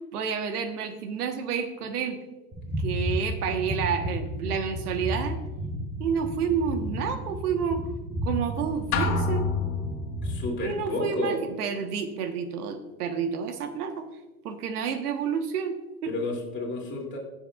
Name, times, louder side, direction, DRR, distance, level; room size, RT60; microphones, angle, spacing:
voice 1, 0.1-2.2 2.8-5.4 6.0-7.8 8.2-9.5 10.6-14.1 14.4-16.1, right 6 dB, 80° right, 7 dB, 1.3 m, -29 dB
sound 1, 2.5-10.6, equal, 10° right, 0.9 m, -33 dB
sound 2, 8.9-10.4, left 4 dB, 70° left, 1.6 m, -27 dB
voice 2, 10.2-11.4 16.0-17.2, left 2 dB, 25° left, 0 dB, 2.6 m, -31 dB
17.0 x 7.1 x 2.4 m, 1.1 s
hypercardioid pair, 120°, 45 cm